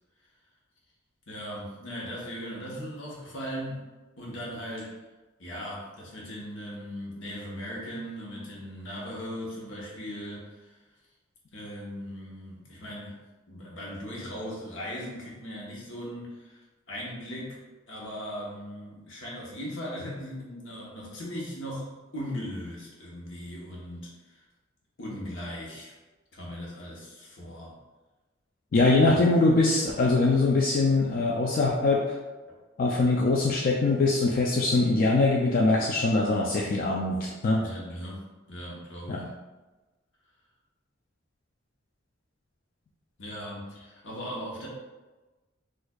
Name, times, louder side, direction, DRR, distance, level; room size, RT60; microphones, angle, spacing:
voice 1, 1.3-3.8 4.2-4.9 5.4-10.7 11.5-13.2 13.5-16.6 16.9-17.6 17.9-24.4 25.0-25.9 26.3-27.8 28.9-29.2 32.4-32.5 37.6-39.3 43.2-44.7, equal, 70° left, -3 dB, 1.0 m, -38 dB
voice 2, 28.7-32.0 32.8-37.6 39.1-39.2, left 3 dB, 45° left, -3 dB, 0.3 m, -23 dB
4.4 x 2.4 x 2.3 m, 1.2 s
head